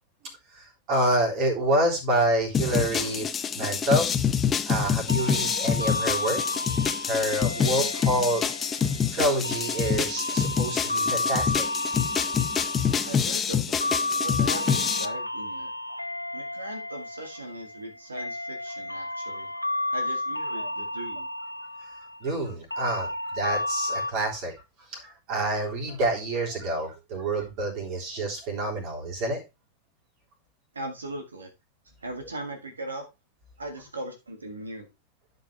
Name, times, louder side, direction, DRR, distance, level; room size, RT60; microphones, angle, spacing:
voice 1, 0.5-4.1 4.6-6.4 7.0-8.5 9.1-11.7 22.2-24.5 24.9-29.4, right 1 dB, 45° right, -1 dB, 3.7 m, -27 dB
rushed mirror.L, 2.5-15.1, left 7 dB, 20° left, 0.8 m, -26 dB
sound 1, 5.1-24.1, left 2 dB, 85° left, 0.5 m, -32 dB
voice 2, 13.1-14.0 14.2-15.7 16.3-19.5 19.9-21.3 30.7-31.5 32.0-33.0 33.6-34.9, right 1 dB, 75° right, 4 dB, 1.9 m, -38 dB
11.5 x 5.5 x 3.4 m, 0.25 s
figure-of-eight pair, 90°, 0 cm